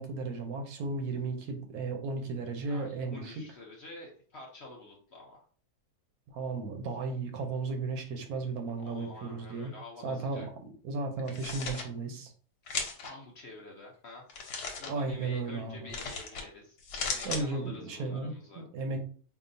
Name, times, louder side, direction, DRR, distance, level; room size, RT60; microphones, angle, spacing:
voice 1, 0.0-3.3 6.3-9.7 10.0-10.4 10.8-12.3 14.9-15.9 17.2-19.0, right 3 dB, 70° right, 5 dB, 1.2 m, -35 dB
voice 2, 2.7-5.4 8.8-10.5 13.0-14.3 14.8-16.8 17.0-18.6, left 2 dB, 50° left, -1 dB, 0.8 m, -48 dB
sound 1, 11.2-11.8 12.7-13.1 14.3-14.9 15.9-16.4 16.8-17.4, left 4 dB, 75° left, 1.4 m, -36 dB
4.8 x 2.7 x 2.6 m, 0.43 s
omnidirectional pair, 1.7 m